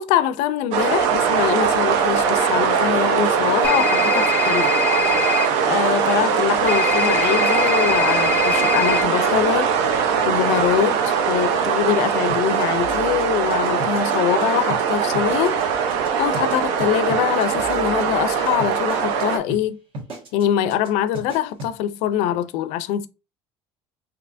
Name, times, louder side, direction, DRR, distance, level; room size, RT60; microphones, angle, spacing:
voice 1, 0.0-4.9 5.7-9.9 10.3-15.6 16.2-19.8 20.3-23.1, left 10 dB, 80° left, 0.4 m, -23 dB
sound 1, 0.7-19.4, right 7 dB, 75° right, 0.6 m, -21 dB
sound 2, 3.6-5.5 6.7-9.0, left 7 dB, 15° left, 0.5 m, -23 dB
sound 3, 12.3-14.4 14.7-14.8 15.1-15.6 15.9-16.1 16.3-19.2 19.5-19.6 19.9-20.4 20.7-20.9 21.1-21.7, right 1 dB, 50° right, 1.4 m, -35 dB
3.3 x 2.8 x 2.5 m
cardioid pair, 125°, 11 cm